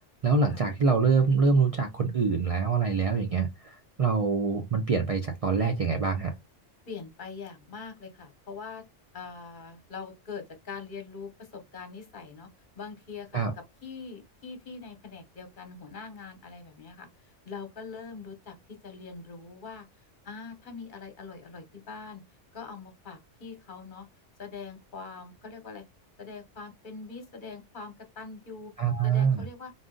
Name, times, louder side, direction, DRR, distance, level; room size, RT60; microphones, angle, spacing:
voice 1, 0.2-6.3 13.3-13.5 28.8-29.5, right 5 dB, 55° right, 0.3 m, -25 dB
voice 2, 6.9-8.8 9.1-12.5 12.8-13.4 13.8-17.1 17.5-19.9 20.2-22.2 22.5-24.1 24.4-25.8 26.2-28.7 29.0-29.7, left 5 dB, 45° left, 1.1 m, -43 dB
3.9 x 2.4 x 3.7 m
omnidirectional pair, 1.2 m